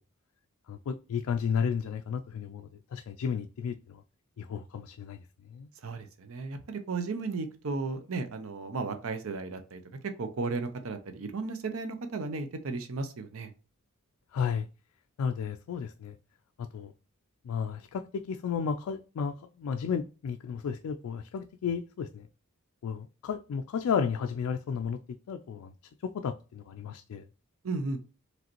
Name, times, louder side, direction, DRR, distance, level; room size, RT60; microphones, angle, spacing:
voice 1, 0.7-4.0 4.4-5.2 5.5-5.7 14.3-14.7 15.2-16.1 16.6-16.9 17.4-22.3 22.8-25.0 25.3-25.7 26.0-27.2, left 6 dB, 80° left, 0.3 m, -33 dB
voice 2, 5.8-13.5 27.6-28.0, right 3 dB, 70° right, 0.6 m, -35 dB
5.0 x 3.1 x 2.9 m
head